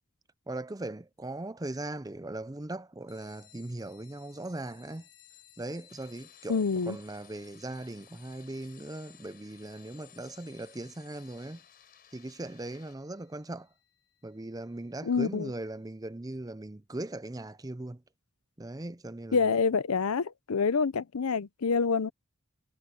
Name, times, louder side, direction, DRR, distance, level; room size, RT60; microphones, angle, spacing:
voice 1, 0.5-5.1 5.6-11.6 12.1-13.7 14.2-18.0 18.6-19.4, right 2 dB, 15° right, 0.6 m, -39 dB
sound 1, 3.1-15.2, left 14 dB, 65° left, 4.1 m, -60 dB
sound 2, 5.9-13.0, left 8 dB, 40° left, 6.1 m, -60 dB
voice 2, 6.5-7.0 15.0-15.5 19.3-22.1, left 5 dB, 80° left, 0.6 m, -27 dB
head